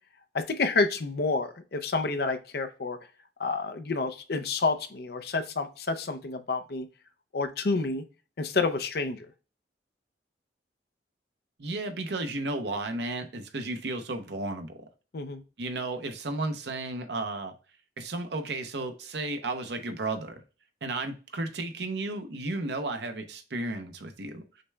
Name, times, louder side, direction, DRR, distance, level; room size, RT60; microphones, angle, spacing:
voice 1, 0.3-3.0 3.4-6.9 7.3-8.0 8.4-9.3 15.1-15.4, left 3 dB, 60° left, 8 dB, 0.5 m, -29 dB
voice 2, 11.6-14.7 15.6-17.5 18.0-20.4 20.8-24.6, right 2 dB, 70° right, 7 dB, 0.7 m, -33 dB
6.5 x 2.3 x 3.2 m, 0.34 s
head